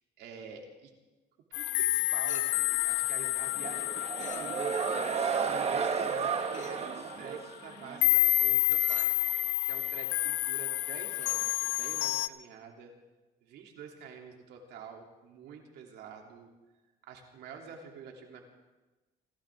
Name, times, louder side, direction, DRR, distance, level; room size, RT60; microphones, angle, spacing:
voice 1, 0.2-0.9 1.5-5.0 5.3-12.9 13.4-16.5 17.1-18.4, right 6 dB, 80° right, 1 dB, 3.1 m, -47 dB
sound 1, 1.5-6.6 7.1-7.3 8.0-12.3, left 18 dB, 90° left, 0.6 m, -29 dB
Chink clink, 2.3-2.8 4.2-4.8 6.5-6.9 8.6-9.2 11.1-11.5, left 7 dB, 45° left, 1.7 m, -49 dB
sound 2, 3.6-8.1, right 6 dB, 40° right, 1.3 m, -32 dB
29.0 x 13.5 x 3.7 m, 1.1 s
cardioid pair, 110°, 17 cm